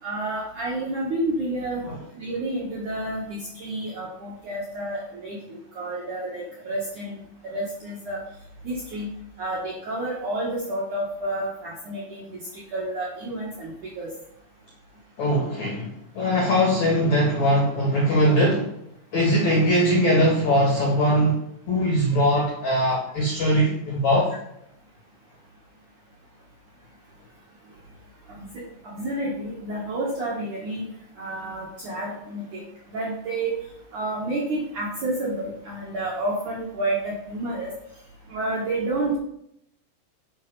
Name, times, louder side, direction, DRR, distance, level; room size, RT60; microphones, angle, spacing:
voice 1, 0.0-1.8 2.1-7.1 7.4-8.2 8.6-9.1 9.4-14.1 28.3-30.9 31.2-32.6 32.9-33.5 33.9-37.7 38.3-39.2, right 2 dB, 55° right, -4 dB, 2.2 m, -30 dB
voice 2, 15.2-18.7 19.1-21.4 21.7-24.3, equal, 50° left, -2 dB, 2.3 m, -21 dB
10.5 x 6.3 x 5.5 m, 0.76 s
omnidirectional pair, 5.9 m